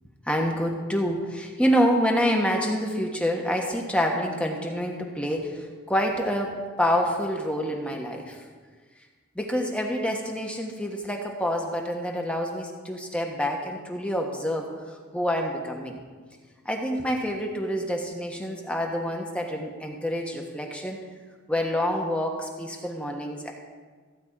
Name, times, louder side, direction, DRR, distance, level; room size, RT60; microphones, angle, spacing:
voice 1, 0.3-8.4 9.3-16.0 16.6-21.0 21.5-23.5, equal, 5° left, 1 dB, 1.2 m, -27 dB
15.0 x 5.3 x 8.8 m, 1.5 s
head